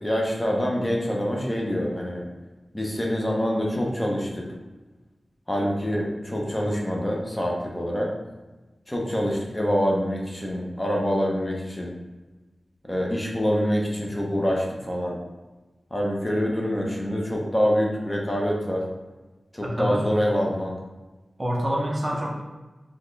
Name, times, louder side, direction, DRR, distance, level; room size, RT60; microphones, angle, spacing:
voice 1, 0.0-2.2 2.7-4.5 5.5-8.1 8.9-11.9 12.9-15.2 15.9-18.8 19.5-20.7, equal, 20° left, -2 dB, 0.6 m, -25 dB
voice 2, 19.6-20.0 21.4-22.4, equal, 25° right, -2 dB, 0.5 m, -27 dB
4.1 x 2.1 x 3.2 m, 1.2 s
wide cardioid pair, 95°, 0 cm